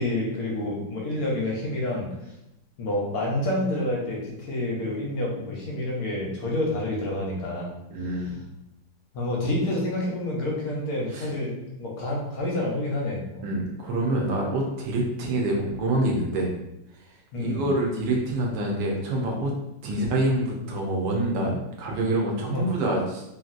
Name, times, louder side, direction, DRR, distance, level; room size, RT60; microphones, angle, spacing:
voice 1, 0.0-2.1 2.8-7.7 9.1-13.4 17.3-17.7 19.9-20.1 22.5-22.7, left 1 dB, 65° left, -3 dB, 1.0 m, -28 dB
voice 2, 7.9-8.3 11.1-11.3 13.4-16.5 17.3-19.6 19.8-23.2, right 1 dB, 85° right, -1 dB, 1.4 m, -26 dB
3.1 x 2.6 x 2.4 m, 0.87 s
omnidirectional pair, 1.9 m